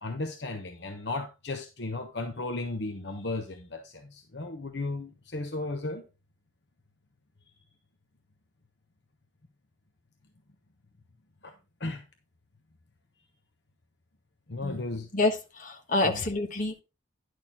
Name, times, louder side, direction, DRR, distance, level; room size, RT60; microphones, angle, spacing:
voice 1, 0.0-6.0 11.4-11.5 11.8-12.1 14.5-15.1 16.0-16.2, left 2 dB, 55° left, 1.0 m, -35 dB
voice 2, 15.1-16.8, left 2 dB, 40° left, 1.4 m, -28 dB
10.5 x 6.5 x 3.7 m
head